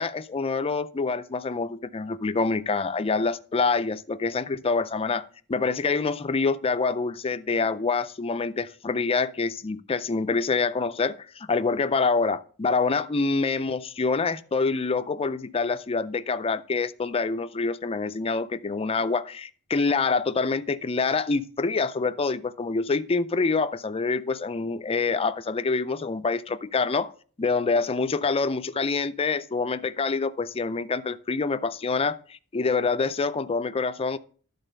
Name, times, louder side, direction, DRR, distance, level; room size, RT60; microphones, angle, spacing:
voice 1, 0.0-27.1 27.4-34.2, left 4 dB, 25° left, 0.4 m, -26 dB
12.0 x 4.0 x 6.6 m
head